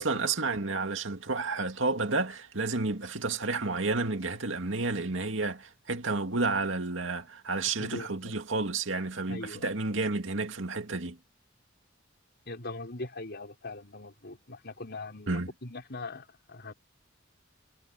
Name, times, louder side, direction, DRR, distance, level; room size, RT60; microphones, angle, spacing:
voice 1, 0.0-11.2 15.3-15.5, right 3 dB, 75° right, 2.4 m, -31 dB
voice 2, 7.8-8.3 9.3-9.7 12.5-16.7, left 2 dB, 55° left, 5.4 m, -41 dB
head